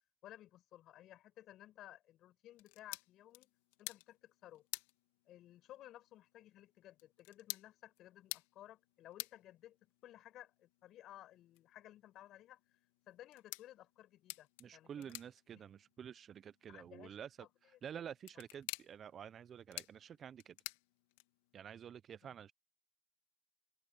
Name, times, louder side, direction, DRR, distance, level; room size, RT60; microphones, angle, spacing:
voice 1, 0.2-3.5 3.8-4.7 5.3-12.8 13.1-15.2 15.5-15.6 16.7-17.2 22.2-22.4, left 13 dB, 40° left, 7.6 m, -57 dB
sound 1, 2.5-21.6, left 22 dB, 65° left, 2.1 m, -53 dB
voice 2, 14.6-17.5 17.8-20.6 21.5-22.5, right 8 dB, 30° right, 0.6 m, -50 dB
hypercardioid pair, 115°, 0 cm